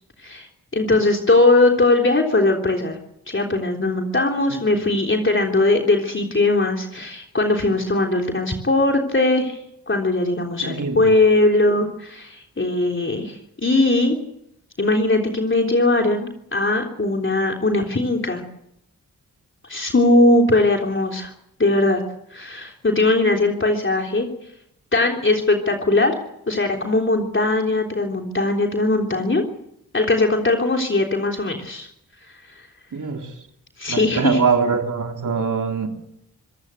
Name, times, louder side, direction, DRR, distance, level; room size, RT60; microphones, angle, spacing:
voice 1, 0.7-3.0 3.3-9.6 9.9-14.2 14.8-18.4 19.7-21.3 21.6-22.0 22.3-24.3 24.9-26.2 26.5-29.4 29.9-31.9 33.8-34.4, left 2 dB, 35° left, 2 dB, 3.5 m, -19 dB
voice 2, 10.6-11.1 32.9-33.3 33.9-35.9, right 5 dB, 60° right, 3 dB, 3.3 m, -23 dB
25.5 x 16.0 x 8.2 m, 0.77 s
supercardioid pair, 45°, 35 cm